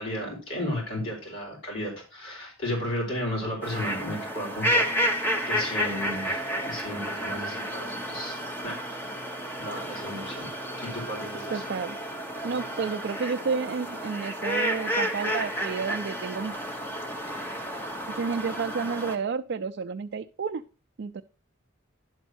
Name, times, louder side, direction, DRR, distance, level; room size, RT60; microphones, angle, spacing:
voice 1, 0.0-5.2 5.5-9.0 9.6-11.6, left 1 dB, 65° left, -2 dB, 4.4 m, -34 dB
sound 1, 3.6-19.2, equal, 10° left, 1.0 m, -31 dB
voice 2, 11.5-12.0 12.4-16.5 18.1-20.6 21.0-21.2, right 5 dB, 55° right, 7 dB, 0.4 m, -31 dB
11.0 x 4.2 x 6.2 m, 0.35 s
head